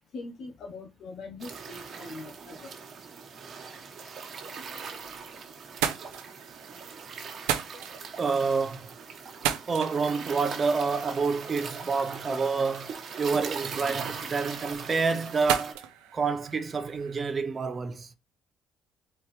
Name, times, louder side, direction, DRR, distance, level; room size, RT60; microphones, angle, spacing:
voice 1, 0.1-2.7, left 3 dB, 65° left, 0.9 m, -42 dB
sound 1, 1.4-15.7, right 5 dB, 55° right, 1.2 m, -41 dB
sound 2, 4.7-5.3 5.6-17.2, right 11 dB, 85° right, 0.5 m, -37 dB
voice 2, 8.2-8.9 9.7-15.9 16.1-18.1, right 4 dB, 40° right, 0.8 m, -28 dB
4.4 x 3.5 x 3.2 m
supercardioid pair, 65°, 0 cm